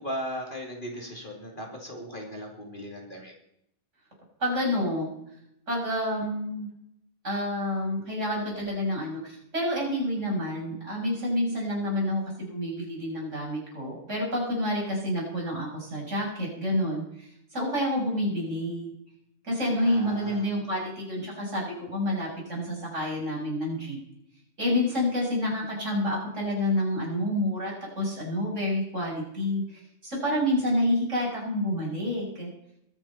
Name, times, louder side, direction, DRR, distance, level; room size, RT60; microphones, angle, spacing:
voice 1, 0.0-3.3 19.8-20.5, equal, 35° left, 0 dB, 2.8 m, -37 dB
voice 2, 4.4-5.1 5.7-6.7 7.2-18.9 19.4-24.0 24.6-32.5, left 1 dB, 60° right, -3 dB, 7.1 m, -28 dB
22.0 x 7.5 x 5.7 m, 0.75 s
omnidirectional pair, 1.4 m